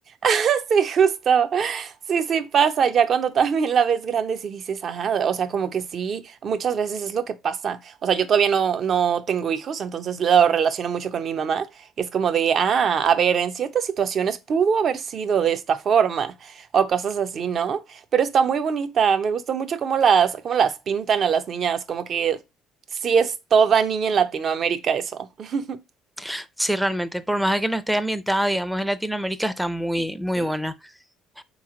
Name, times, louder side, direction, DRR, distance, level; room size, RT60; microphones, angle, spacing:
voice 1, 0.2-11.7 12.0-22.4 23.0-25.8 30.4-30.5, right 7 dB, 50° right, 0.6 m, -22 dB
voice 2, 26.2-30.7, equal, 5° right, 0.5 m, -25 dB
4.2 x 3.2 x 3.7 m
supercardioid pair, 75°, 0 cm